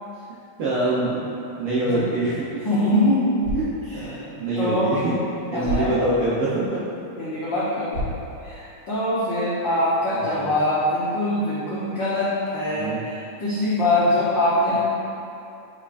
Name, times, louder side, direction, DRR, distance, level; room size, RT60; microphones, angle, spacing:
voice 1, 0.6-1.3 1.6-2.4 3.5-5.1 5.5-6.8 10.1-10.5 12.7-13.0 14.7-14.8, right 2 dB, 70° right, -9 dB, 1.3 m, -25 dB
voice 2, 2.6-3.2 3.9-4.0 4.6-4.9 5.5-5.9 7.2-8.1 8.4-14.8, left 1 dB, 90° left, -9 dB, 1.0 m, -23 dB
sound 1, 3.2-9.3, equal, 45° right, 1.3 m, -36 dB
8.2 x 4.9 x 2.5 m, 2.7 s
omnidirectional pair, 3.5 m